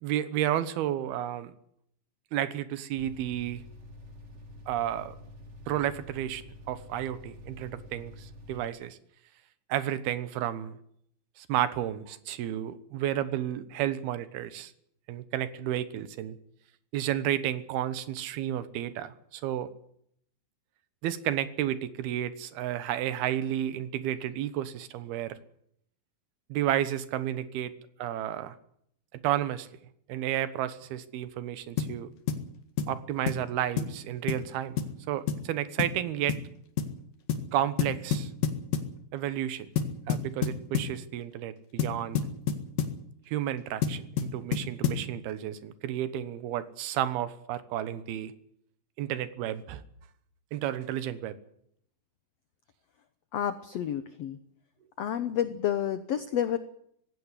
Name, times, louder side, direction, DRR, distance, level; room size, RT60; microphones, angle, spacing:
voice 1, 0.0-1.5 2.3-3.6 4.7-5.2 5.7-9.0 9.7-10.8 11.4-14.7 15.1-16.4 16.9-19.7 21.0-25.4 26.5-27.7 28.0-28.6 29.2-29.7 30.1-32.1 32.9-34.8 35.1-36.4 37.5-38.3 39.1-39.7 40.1-42.2 43.3-48.3 49.0-49.8 50.5-51.4, right 11 dB, 90° right, 14 dB, 3.2 m, -32 dB
sound 1, 2.9-8.7, left 1 dB, 30° right, 1.2 m, -48 dB
sound 2, 31.8-32.0 32.3-32.5 32.8-33.0 33.3-33.4 33.8-34.0 34.3-34.5 34.8-34.9 35.3-35.5 35.8-36.0 36.3-36.5 36.8-36.9 37.3-37.5 37.8-38.9 39.8-41.0 41.8-43.0 43.8-45.1, left 7 dB, 65° left, 3.4 m, -29 dB
voice 2, 53.3-54.4 55.0-56.6, left 10 dB, 85° left, 12 dB, 1.4 m, -30 dB
18.0 x 16.5 x 9.9 m, 0.70 s
omnidirectional pair, 4.3 m